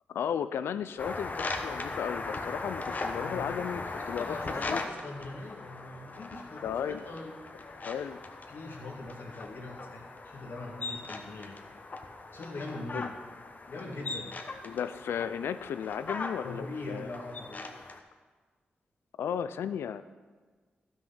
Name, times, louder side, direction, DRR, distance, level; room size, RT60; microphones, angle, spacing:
voice 1, 0.1-4.4 4.7-4.8 6.6-7.0 7.8-8.2 12.9-13.1 14.6-17.1 19.2-20.0, left 8 dB, 90° left, 13 dB, 0.4 m, -34 dB
sound 1, 1.0-18.0, left 3 dB, 45° left, 1.0 m, -39 dB
voice 2, 3.1-7.4 8.5-13.1 13.7-14.4 16.4-17.9, left 2 dB, 65° left, -1 dB, 2.0 m, -42 dB
12.5 x 6.3 x 5.7 m, 1.4 s
cardioid pair, 60°, 4 cm